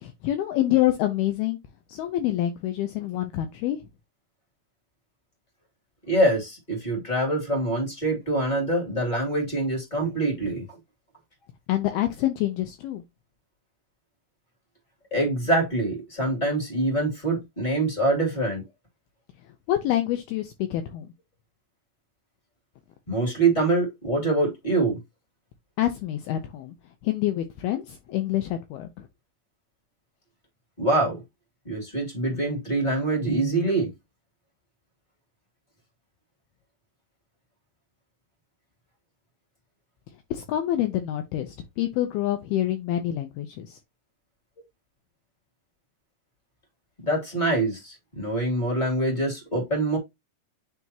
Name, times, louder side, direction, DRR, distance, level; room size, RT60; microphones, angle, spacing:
voice 1, 0.0-1.6 1.9-3.8 11.7-13.0 19.7-21.1 25.8-26.7 27.0-29.1 40.3-43.8, left 13 dB, 80° left, 2.5 m, -26 dB
voice 2, 6.1-10.7 15.1-18.6 23.1-25.0 30.8-31.2 31.6-33.9 47.0-50.0, right 2 dB, 15° left, 2.0 m, -25 dB
9.4 x 3.5 x 2.9 m
omnidirectional pair, 4.9 m